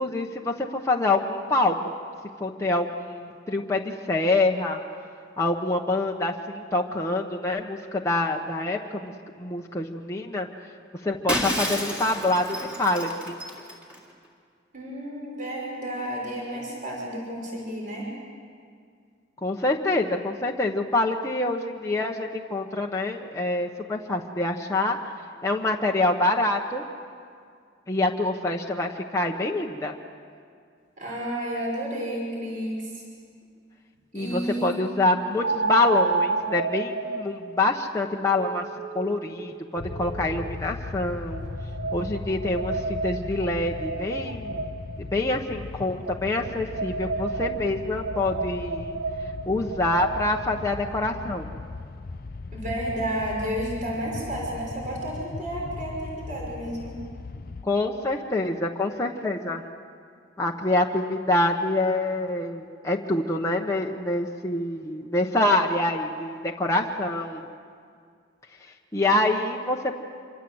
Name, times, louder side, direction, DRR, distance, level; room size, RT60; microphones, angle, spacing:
voice 1, 0.0-1.8 2.4-4.8 5.4-9.1 9.4-10.5 11.0-13.4 19.4-25.0 25.4-26.8 27.9-29.9 34.1-38.6 38.9-41.4 41.9-44.6 45.0-49.0 49.5-51.5 57.6-59.6 60.4-67.4 68.9-69.9, left 2 dB, 15° left, 0 dB, 1.1 m, -26 dB
Shatter, 11.3-14.0, equal, 5° right, 3.3 m, -30 dB
voice 2, 14.7-18.1 31.0-33.0 34.1-34.8 52.5-57.0, right 1 dB, 40° right, -3 dB, 6.0 m, -31 dB
sound 1, 32.8-32.9 35.4-40.6 41.3-45.0 46.0-50.6, right 4 dB, 65° right, 2.5 m, -31 dB
sound 2, 39.8-57.7, left 3 dB, 50° left, 0.6 m, -38 dB
26.5 x 24.5 x 8.0 m, 2.2 s
head